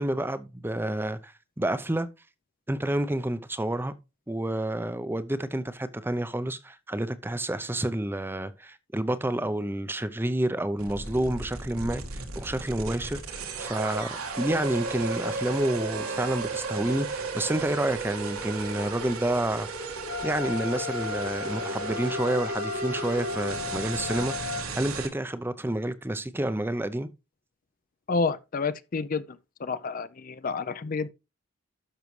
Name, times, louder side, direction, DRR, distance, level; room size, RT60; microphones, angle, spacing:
voice 1, 0.0-2.1 2.7-3.9 4.3-19.9 20.2-27.1, right 1 dB, 10° right, 0.5 m, -29 dB
sound 1, 10.8-25.1, right 4 dB, 85° right, 1.8 m, -34 dB
Wind instrument woodwind instrument, 20.1-24.7, left 6 dB, 75° left, 3.9 m, -35 dB
voice 2, 28.1-31.1, left 4 dB, 40° left, 0.4 m, -30 dB
12.0 x 6.2 x 3.1 m
head